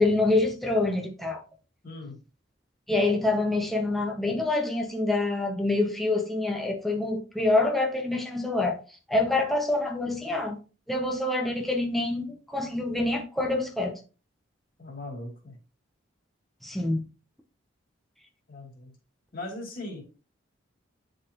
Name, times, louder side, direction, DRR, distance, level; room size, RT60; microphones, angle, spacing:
voice 1, 0.0-1.4 2.9-8.8 9.1-10.6 10.9-14.0 16.6-17.0, left 2 dB, ahead, 0.6 m, -26 dB
voice 2, 1.8-2.2 14.8-15.6 18.5-19.0 19.3-20.0, left 2 dB, 45° left, 2.7 m, -39 dB
9.9 x 4.0 x 2.9 m
head